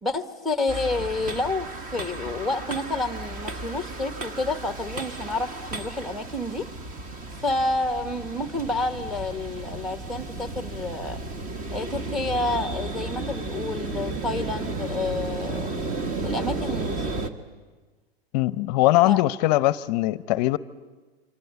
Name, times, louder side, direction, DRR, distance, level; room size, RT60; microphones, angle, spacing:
voice 1, 0.0-6.7 7.4-11.2 11.7-15.7 16.2-17.1 19.0-19.2, left 2 dB, ahead, 9 dB, 1.0 m, -29 dB
sound 1, 0.7-17.3, right 2 dB, 25° right, 1.4 m, -33 dB
voice 2, 18.3-20.6, left 17 dB, 40° left, 16 dB, 0.7 m, -21 dB
27.0 x 25.5 x 8.2 m, 1.3 s
hypercardioid pair, 150°, 32 cm